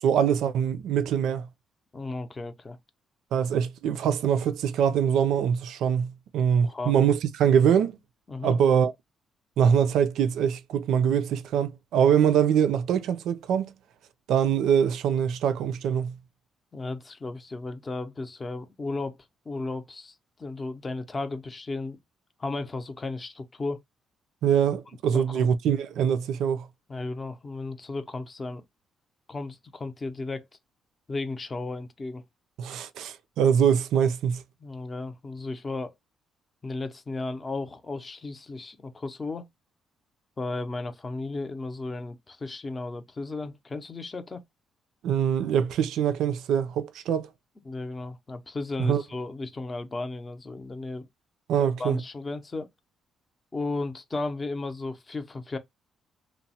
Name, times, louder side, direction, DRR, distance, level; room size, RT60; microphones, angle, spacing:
voice 1, 0.0-1.5 3.3-8.0 8.4-8.9 9.6-13.7 14.3-16.1 24.4-26.7 32.6-34.4 45.0-47.3 48.8-49.0 51.5-52.0, right 8 dB, 80° right, 0.4 m, -23 dB
voice 2, 1.9-2.8 6.6-7.0 8.3-8.6 16.7-19.2 19.5-22.0 22.4-23.8 25.1-25.5 26.9-28.6 29.3-30.5 31.1-32.2 34.6-35.9 36.6-39.5 40.4-44.4 47.7-51.1 51.6-52.7 53.5-55.6, left 3 dB, 25° left, 0.5 m, -34 dB
2.9 x 2.0 x 2.7 m
cardioid pair, 90°, 0 cm